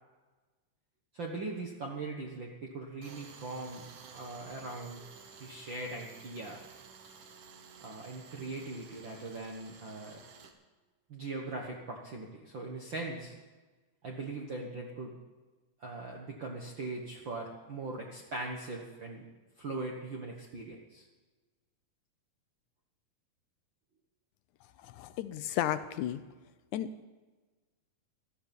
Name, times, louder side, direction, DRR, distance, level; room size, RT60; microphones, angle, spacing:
voice 1, 1.1-3.9 4.1-5.0 5.4-6.6 7.8-10.2 11.1-13.3 14.0-15.2 15.8-19.3 19.6-21.0, right 2 dB, 50° right, -1 dB, 1.5 m, -40 dB
Tools, 3.0-10.5, right 6 dB, 70° right, 2.8 m, -53 dB
voice 2, 24.8-26.2 26.7-27.1, left 11 dB, 75° left, 12 dB, 1.9 m, -34 dB
16.5 x 13.0 x 5.3 m, 1.3 s
omnidirectional pair, 3.9 m